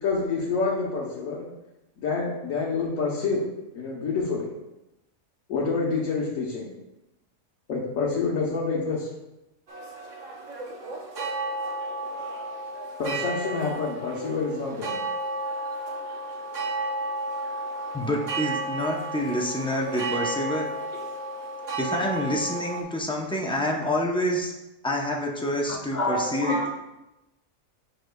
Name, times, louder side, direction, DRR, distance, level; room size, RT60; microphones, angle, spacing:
voice 1, 0.0-1.5 2.0-3.4 3.7-4.5 5.5-6.7 7.7-9.1 13.0-14.9, left 4 dB, 80° left, -5 dB, 1.4 m, -27 dB
sound 1, 9.7-22.8, right 2 dB, 65° right, 1.3 m, -33 dB
voice 2, 17.9-20.7 21.8-24.5 24.8-26.5, equal, 5° left, 0 dB, 0.4 m, -27 dB
voice 3, 25.7-26.7, left 1 dB, 35° left, -4 dB, 1.5 m, -27 dB
7.8 x 6.0 x 2.3 m, 0.96 s
omnidirectional pair, 1.4 m